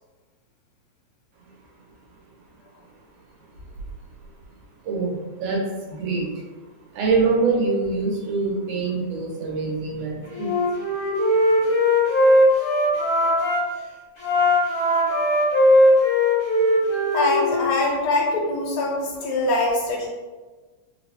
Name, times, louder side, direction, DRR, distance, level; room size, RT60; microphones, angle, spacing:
voice 1, 4.8-6.3 6.9-10.5, right 4 dB, 90° right, -2 dB, 2.1 m, -24 dB
Wind instrument woodwind instrument, 10.3-13.6 14.2-17.7, left 1 dB, 60° left, 0.5 m, -19 dB
voice 2, 17.1-20.1, left 2 dB, 75° left, -2 dB, 1.7 m, -23 dB
4.7 x 2.0 x 2.8 m, 1.3 s
omnidirectional pair, 3.3 m